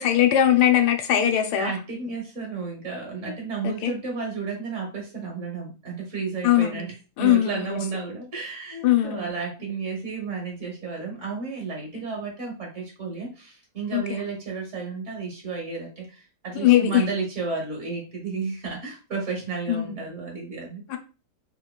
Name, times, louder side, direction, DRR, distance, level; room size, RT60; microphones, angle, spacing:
voice 1, 0.0-1.7 3.6-3.9 6.4-6.9 7.2-7.8 8.8-9.3 13.9-14.0 16.5-17.0 19.7-20.0 20.9-21.0, left 12 dB, 80° left, 6 dB, 1.1 m, -20 dB
voice 2, 1.6-20.8, right 4 dB, 50° right, -1 dB, 1.4 m, -32 dB
3.7 x 2.9 x 2.3 m, 0.33 s
omnidirectional pair, 1.7 m